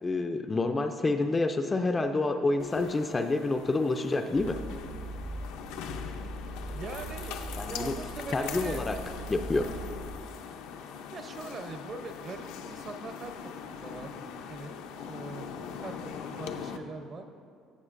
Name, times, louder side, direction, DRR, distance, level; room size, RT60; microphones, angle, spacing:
voice 1, 0.0-4.6 7.5-7.9 8.3-9.0 9.3-9.7, left 2 dB, 15° left, 6 dB, 0.3 m, -28 dB
sound 1, 2.6-16.8, left 7 dB, 80° left, 0.5 m, -41 dB
sound 2, 4.3-10.2, right 1 dB, 70° right, 0.9 m, -41 dB
voice 2, 6.7-7.4 7.7-8.8 11.1-14.1 14.5-15.5 15.8-17.3, right 3 dB, 35° right, 7 dB, 0.6 m, -42 dB
14.5 x 7.2 x 2.5 m, 2.2 s
cardioid pair, 150°, 0 cm